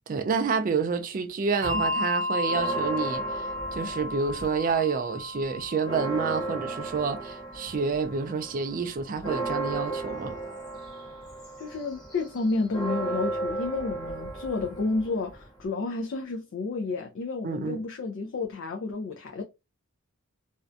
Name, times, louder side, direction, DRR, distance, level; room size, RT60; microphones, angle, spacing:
voice 1, 0.1-10.4 17.4-17.8, right 5 dB, 40° right, 0.3 m, -29 dB
Bell, 1.6-8.5, left 1 dB, 55° right, 0.7 m, -34 dB
Church bell, 2.4-4.8 5.2-5.3 5.6-15.7, right 3 dB, 20° left, 0.9 m, -35 dB
voice 2, 11.6-19.4, left 3 dB, 60° left, 0.4 m, -31 dB
2.5 x 2.1 x 2.4 m
head